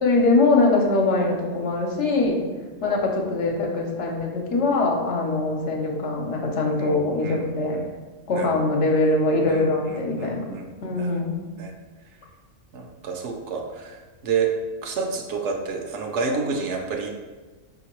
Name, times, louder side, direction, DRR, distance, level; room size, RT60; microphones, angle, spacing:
voice 1, 0.0-2.5 2.8-7.8 8.3-10.4 10.8-11.4, left 2 dB, 70° left, 0 dB, 1.0 m, -22 dB
voice 2, 6.7-7.9 8.3-8.6 9.4-10.7 11.0-11.1 11.6-11.7 12.7-14.5 14.8-17.1, right 5 dB, 70° right, 2 dB, 0.9 m, -30 dB
5.0 x 2.8 x 3.0 m, 1.3 s
omnidirectional pair, 1.3 m